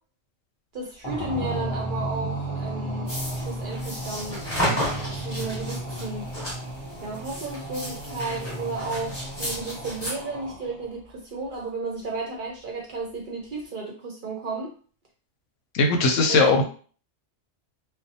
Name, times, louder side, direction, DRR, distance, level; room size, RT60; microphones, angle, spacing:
voice 1, 0.7-4.4 5.2-6.3 7.0-9.1 9.4-14.7 16.3-16.6, right 3 dB, 55° right, 0 dB, 0.6 m, -33 dB
sound 1, 1.0-10.9, right 1 dB, 35° left, 0.4 m, -34 dB
sound 2, 3.1-10.1, equal, 10° left, 1.0 m, -33 dB
voice 2, 15.7-16.6, left 3 dB, 85° left, 4 dB, 0.9 m, -19 dB
2.6 x 2.0 x 2.6 m, 0.41 s
omnidirectional pair, 1.3 m